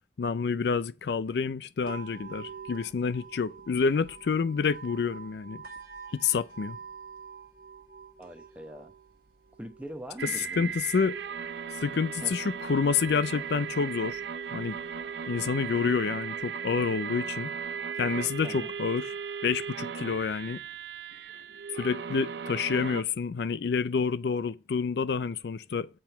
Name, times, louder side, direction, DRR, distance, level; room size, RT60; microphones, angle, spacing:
voice 1, 0.2-5.6 6.1-6.8 10.4-11.2 11.8-14.2 14.5-14.8 15.3-17.5 18.0-19.1 19.4-20.6 21.7-25.9, left 5 dB, 70° left, 0.4 m, -28 dB
sound 1, 1.8-15.8, right 5 dB, 55° right, 1.4 m, -49 dB
voice 2, 8.2-8.9 9.6-10.7 12.2-12.4 18.4-18.7, equal, 10° right, 0.9 m, -42 dB
sound 2, 10.2-23.0, right 7 dB, 85° right, 0.6 m, -37 dB
7.7 x 4.4 x 6.6 m
head